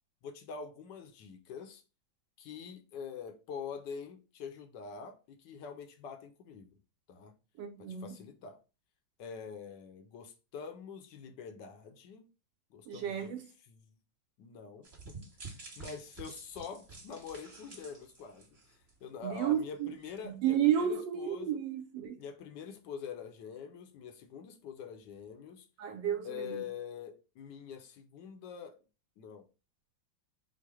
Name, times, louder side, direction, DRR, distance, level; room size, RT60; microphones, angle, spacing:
voice 1, 0.2-1.8 2.4-6.8 7.1-7.3 8.0-8.6 9.2-12.2 12.7-13.3 13.7-14.0 14.4-15.1 15.8-18.5 19.0-21.6 22.2-25.7 26.2-28.8 29.2-29.4, left 6 dB, 75° left, 1.2 m, -45 dB
voice 2, 7.6-8.2 12.9-13.4 19.2-19.9 20.2-22.2 25.8-26.7, right 9 dB, 75° right, 1.3 m, -32 dB
sound 1, 14.8-19.1 19.4-19.6 20.0-20.1, right 4 dB, 35° right, 1.4 m, -50 dB
4.5 x 2.1 x 4.7 m
omnidirectional pair, 2.1 m